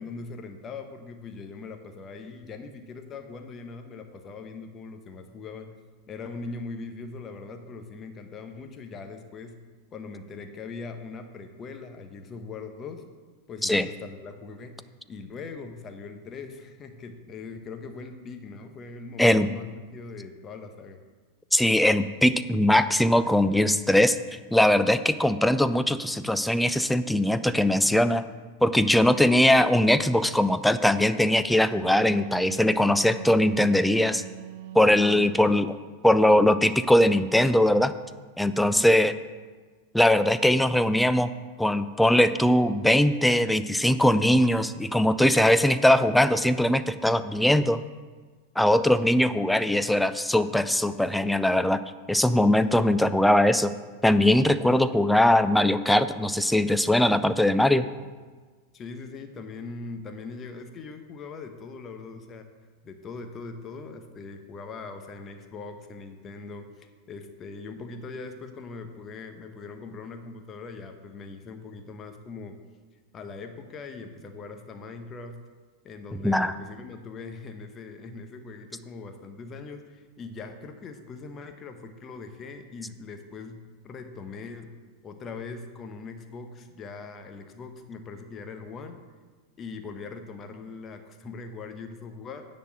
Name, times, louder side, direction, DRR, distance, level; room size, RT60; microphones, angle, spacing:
voice 1, 0.0-5.7 6.1-9.5 9.9-13.0 13.5-14.7 15.1-21.0 35.0-35.5 38.6-38.9 49.7-50.0 58.7-62.5 62.8-72.5 73.1-75.4 75.8-84.7 85.0-89.0 89.6-92.5, left 4 dB, 25° left, 6 dB, 1.0 m, -41 dB
voice 2, 21.5-24.2 24.5-28.2 28.6-34.2 34.7-35.8 36.0-37.9 38.4-39.1 39.9-41.3 41.6-47.8 48.6-51.8 52.1-53.7 54.0-57.9 76.2-76.5, left 1 dB, 5° left, 12 dB, 0.4 m, -21 dB
Wind instrument woodwind instrument, 31.5-35.7, right 11 dB, 50° right, 0.5 m, -42 dB
10.0 x 4.3 x 7.6 m, 1.4 s
figure-of-eight pair, 90°, 0 cm